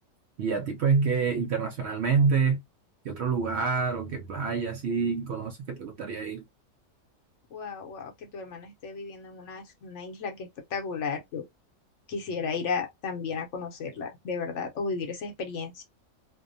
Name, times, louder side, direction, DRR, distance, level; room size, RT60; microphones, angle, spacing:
voice 1, 0.4-2.6 3.0-6.4, right 5 dB, 65° right, 0.7 m, -27 dB
voice 2, 7.5-11.4 12.1-15.8, left 5 dB, 65° left, 0.9 m, -34 dB
2.7 x 2.1 x 2.5 m
omnidirectional pair, 1.5 m